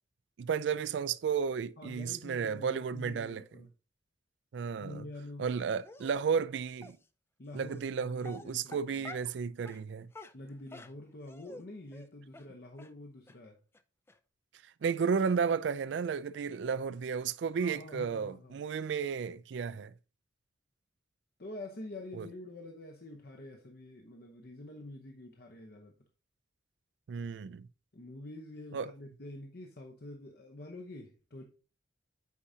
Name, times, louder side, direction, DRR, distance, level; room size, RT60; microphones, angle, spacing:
voice 1, 0.4-3.4 4.5-5.1 5.4-7.0 7.5-10.1 14.8-19.9 22.1-22.3 27.1-27.7 28.7-28.9, right 6 dB, 75° right, 0.4 m, -33 dB
voice 2, 1.8-3.7 4.8-5.5 7.4-9.1 10.3-13.6 17.6-18.6 21.4-25.9 27.9-31.4, left 1 dB, 55° left, 0.8 m, -47 dB
Dog, 5.8-6.2 6.8-6.9 7.7-7.9 8.2-9.4 9.7-9.8 10.1-11.6 11.9-12.1 12.3-12.5 12.8-12.9 13.3-13.4 13.7-13.8 14.1-14.2, left 2 dB, 15° left, 0.3 m, -48 dB
8.3 x 4.9 x 2.7 m
head